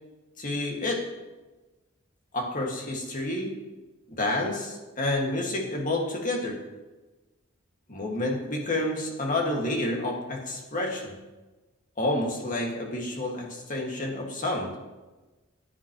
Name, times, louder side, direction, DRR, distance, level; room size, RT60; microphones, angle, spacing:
voice 1, 0.4-1.1 2.3-3.6 4.1-6.6 7.9-11.2 12.0-14.7, left 1 dB, 40° left, 0 dB, 1.8 m, -29 dB
14.5 x 9.6 x 3.0 m, 1.2 s
head